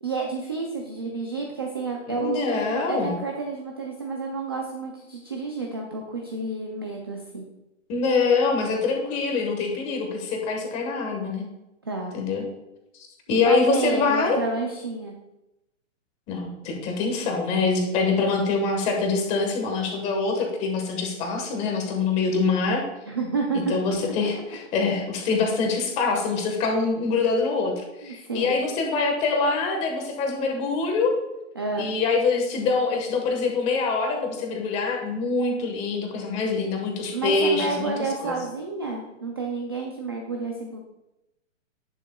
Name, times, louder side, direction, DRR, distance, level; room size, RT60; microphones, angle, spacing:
voice 1, 0.0-7.5 11.9-12.1 13.3-15.1 23.1-23.6 24.0-24.1 28.0-28.6 31.6-31.9 37.1-40.8, right 3 dB, 20° right, 0 dB, 0.4 m, -30 dB
voice 2, 2.1-3.2 7.9-11.4 12.1-12.4 13.3-14.4 16.3-22.8 23.5-31.1 31.8-38.3, left 4 dB, 15° left, 2 dB, 1.3 m, -24 dB
10.5 x 9.0 x 2.3 m, 0.94 s
hypercardioid pair, 165°, 38 cm